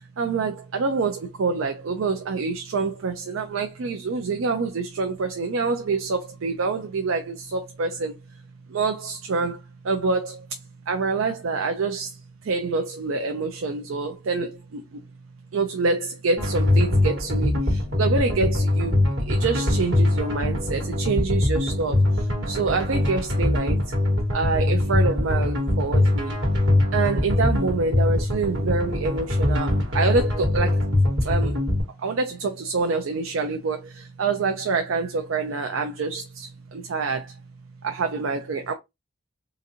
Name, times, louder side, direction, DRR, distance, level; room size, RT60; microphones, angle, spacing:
voice 1, 0.2-8.2 8.7-10.5 10.9-15.0 15.5-23.9 24.3-26.4 26.9-30.9 31.2-31.6 32.0-37.4 37.8-38.7, right 4 dB, 90° right, 0.5 m, -26 dB
sound 1, 16.4-31.8, left 1 dB, 65° right, 1.5 m, -22 dB
3.9 x 2.6 x 2.8 m
head